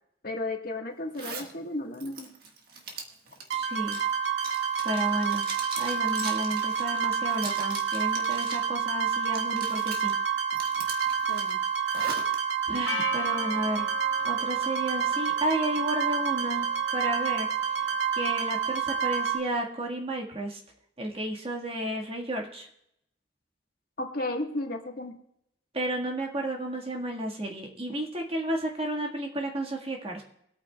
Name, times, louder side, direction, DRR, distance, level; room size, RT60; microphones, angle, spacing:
voice 1, 0.2-2.3 11.3-11.6 24.0-25.2, left 2 dB, 50° left, 2 dB, 1.5 m, -34 dB
Zipper (clothing), 1.1-1.5 1.9-8.7 9.0-10.1 10.5-12.4, right 4 dB, 55° right, 1.6 m, -41 dB
voice 2, 3.5-4.0 4.8-5.4 5.8-10.1 12.7-13.8 14.2-16.7 16.9-17.5 18.1-20.6 21.0-22.7 25.7-30.2, right 1 dB, 30° right, 0 dB, 1.7 m, -32 dB
sound 1, 3.5-19.4, right 7 dB, 75° right, 1.8 m, -28 dB
Percussion, 12.9-17.8, left 4 dB, 70° left, 1.1 m, -41 dB
24.0 x 8.8 x 2.3 m, 0.77 s
head